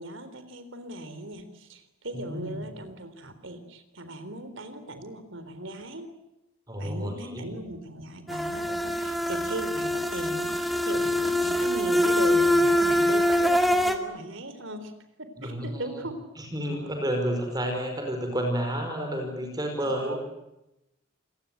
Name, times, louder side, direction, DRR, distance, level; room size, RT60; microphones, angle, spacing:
voice 1, 0.0-6.2 6.8-14.9 15.2-16.2 16.7-17.0 19.8-20.2, right 1 dB, 65° right, 10 dB, 3.9 m, -38 dB
voice 2, 2.1-2.5 6.7-7.5 15.4-16.0 16.4-20.2, equal, 20° right, 3 dB, 5.4 m, -30 dB
sound 1, 8.3-14.0, left 1 dB, ahead, 1.9 m, -24 dB
28.0 x 19.5 x 9.3 m, 0.92 s
head